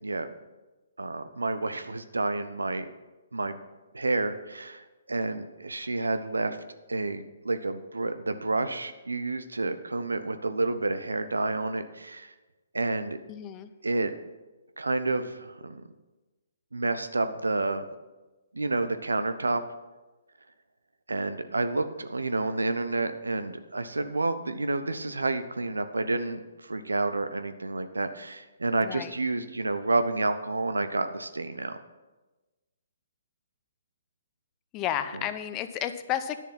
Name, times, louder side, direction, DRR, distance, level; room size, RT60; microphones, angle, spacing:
voice 1, 0.0-0.3 1.0-2.9 3.3-3.6 3.9-6.6 6.9-12.3 12.7-13.2 13.8-14.1 14.8-15.8 16.7-17.8 18.5-19.6 21.1-31.8, right 2 dB, 80° right, 10 dB, 0.7 m, -29 dB
voice 2, 13.3-13.7 28.8-29.1 34.7-36.4, left 10 dB, 25° left, 11 dB, 0.7 m, -32 dB
10.5 x 7.0 x 5.8 m, 1.2 s
figure-of-eight pair, 130°, 0 cm